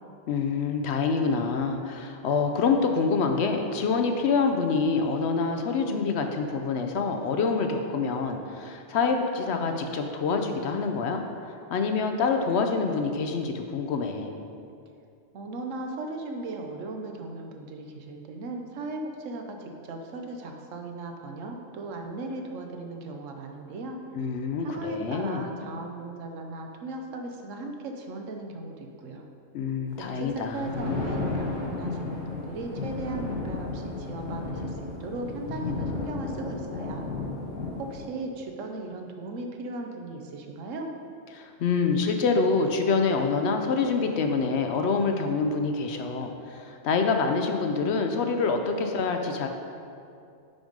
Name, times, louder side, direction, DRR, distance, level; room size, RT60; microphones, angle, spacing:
voice 1, 0.3-11.2 11.7-14.4 24.1-25.4 29.5-31.0 41.3-49.5, left 4 dB, 65° left, 5 dB, 0.8 m, -26 dB
voice 2, 15.3-24.0 24.6-29.2 30.0-37.1 37.8-40.9, right 2 dB, 80° right, 3 dB, 1.1 m, -37 dB
Thunder, 30.3-38.1, left 3 dB, 90° left, 1.8 m, -33 dB
6.1 x 5.1 x 5.1 m, 2.5 s
omnidirectional pair, 1.3 m